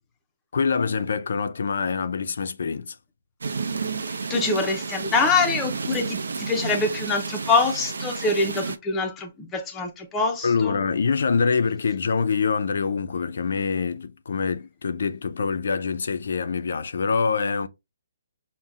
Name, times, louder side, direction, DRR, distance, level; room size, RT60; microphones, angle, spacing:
voice 1, 0.5-3.0 10.4-17.7, left 5 dB, 65° left, 0.5 m, -25 dB
sound 1, 3.4-8.8, right 4 dB, 85° right, 0.5 m, -31 dB
voice 2, 4.3-10.8, left 3 dB, 10° left, 0.5 m, -24 dB
5.5 x 2.1 x 2.4 m
hypercardioid pair, 170°, 0 cm